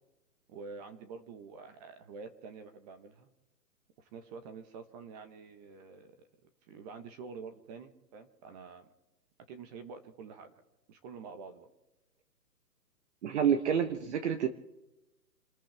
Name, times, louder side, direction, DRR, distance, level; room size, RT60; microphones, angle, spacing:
voice 1, 0.5-3.3 4.0-6.3 6.7-8.9 9.5-10.5 10.9-11.7, right 5 dB, 25° right, 8 dB, 1.4 m, -47 dB
voice 2, 13.2-14.5, right 8 dB, 45° right, 9 dB, 1.3 m, -28 dB
29.0 x 14.0 x 3.5 m, 0.97 s
hypercardioid pair, 150°, 49 cm